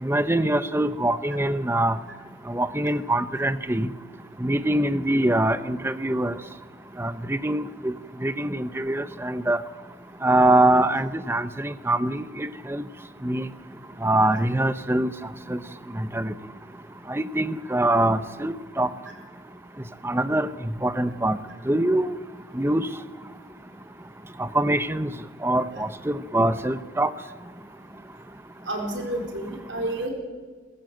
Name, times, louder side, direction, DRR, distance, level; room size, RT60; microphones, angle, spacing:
voice 1, 0.0-2.0 2.5-3.9 4.4-6.3 7.0-7.9 8.2-9.6 10.2-12.8 13.2-13.5 14.0-15.1 15.5-15.6 15.9-16.3 17.1-18.9 20.0-20.5 20.8-21.4 21.7-22.2 22.5-22.9 24.4-25.1 25.4-27.1, right 1 dB, 10° right, 13 dB, 0.7 m, -23 dB
voice 2, 28.7-30.1, right 1 dB, 65° right, 2 dB, 4.2 m, -30 dB
23.0 x 14.0 x 7.9 m, 1.5 s
head